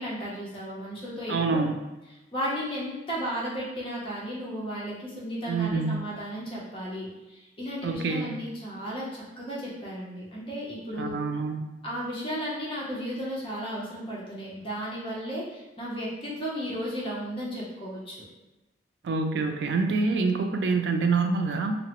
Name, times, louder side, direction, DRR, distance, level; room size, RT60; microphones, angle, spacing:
voice 1, 0.0-1.6 2.3-11.2 11.8-18.2, equal, 30° left, -6 dB, 0.7 m, -34 dB
voice 2, 1.3-1.8 5.5-6.0 7.8-8.4 11.0-11.7 19.0-21.8, right 4 dB, 70° right, 5 dB, 0.3 m, -26 dB
2.7 x 2.0 x 2.9 m, 1.0 s
head